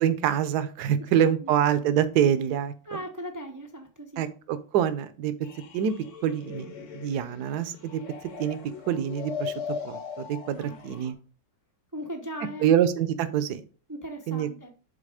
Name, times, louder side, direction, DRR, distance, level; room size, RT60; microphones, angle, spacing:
voice 1, 0.0-3.0 4.2-5.3 5.7-5.9 6.2-8.0 8.4-8.6 8.9-9.5 9.8-11.1 12.6-13.6 14.3-14.5, right 9 dB, 70° right, 12 dB, 1.2 m, -25 dB
voice 2, 1.0-1.5 2.9-4.3 10.6-10.8 11.9-12.7 13.9-14.7, equal, 30° right, 4 dB, 0.3 m, -38 dB
sound 1, 5.4-11.1, left 6 dB, 50° left, 1.2 m, -39 dB
7.6 x 3.9 x 4.8 m, 0.39 s
omnidirectional pair, 1.9 m